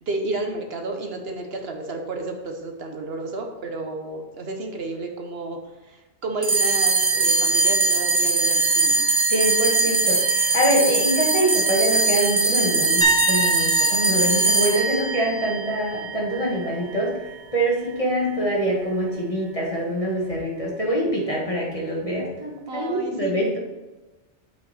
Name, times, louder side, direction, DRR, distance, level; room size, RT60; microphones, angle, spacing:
voice 1, 0.1-5.6 5.8-9.1 22.7-23.6, right 2 dB, 65° right, 3 dB, 1.1 m, -31 dB
sound 1, 6.4-17.1, right 3 dB, 30° right, 0.7 m, -21 dB
voice 2, 9.3-17.1 17.5-23.6, equal, 30° left, -3 dB, 1.9 m, -24 dB
sound 2, 13.0-16.8 17.1-17.4 20.3-20.4, right 2 dB, 15° left, 1.3 m, -28 dB
7.9 x 5.6 x 4.2 m, 1.1 s
omnidirectional pair, 1.2 m